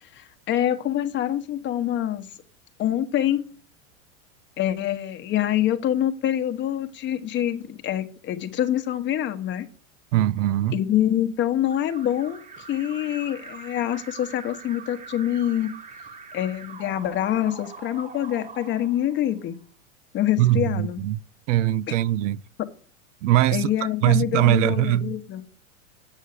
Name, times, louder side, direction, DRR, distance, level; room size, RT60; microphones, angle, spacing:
voice 1, 0.0-2.3 2.8-3.4 4.6-9.7 10.7-12.4 12.7-15.7 16.3-19.6 20.1-21.0 23.5-25.4, left 11 dB, 30° left, 1.1 m, -25 dB
voice 2, 10.1-10.8 20.4-21.2 21.5-22.4 23.2-23.7 24.0-25.1, right 14 dB, 65° right, 0.5 m, -21 dB
Alarm, 11.6-19.5, right 4 dB, 20° right, 1.1 m, -43 dB
8.3 x 6.4 x 8.3 m
hypercardioid pair, 130°, 40 cm